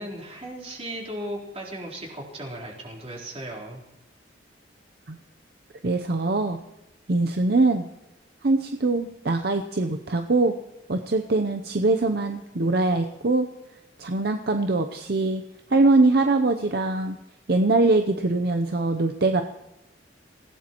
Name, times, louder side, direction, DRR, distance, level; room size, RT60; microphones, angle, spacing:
voice 1, 0.0-3.8, right 1 dB, 35° right, -3 dB, 3.8 m, -36 dB
voice 2, 5.8-6.6 7.1-7.8 8.4-10.5 10.9-13.5 14.0-15.4 15.7-17.2 17.5-19.4, right 2 dB, 60° right, 6 dB, 0.7 m, -22 dB
27.0 x 16.5 x 3.0 m, 0.93 s
head